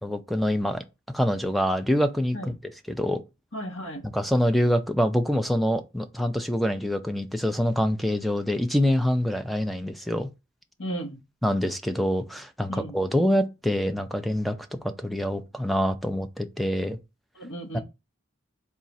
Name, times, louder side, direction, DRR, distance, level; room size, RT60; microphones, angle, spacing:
voice 1, 0.0-2.5 2.9-3.2 4.1-10.3 11.4-14.6 14.8-17.0 17.7-17.8, equal, ahead, 0.3 m, -25 dB
voice 2, 3.5-4.0 10.8-11.2 12.7-12.9 17.3-17.8, right 1 dB, 60° left, 1.1 m, -34 dB
3.6 x 2.4 x 4.1 m
head